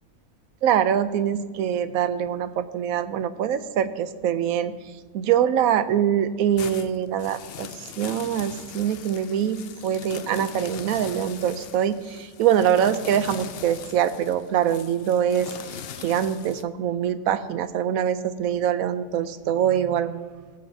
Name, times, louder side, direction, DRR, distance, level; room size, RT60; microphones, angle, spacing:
voice 1, 0.6-4.7 5.1-20.4, right 9 dB, 90° right, 12 dB, 1.0 m, -24 dB
sound 1, 6.5-16.6, left 8 dB, 60° left, 0.6 m, -40 dB
20.0 x 7.6 x 2.7 m, 1.5 s
omnidirectional pair, 1.4 m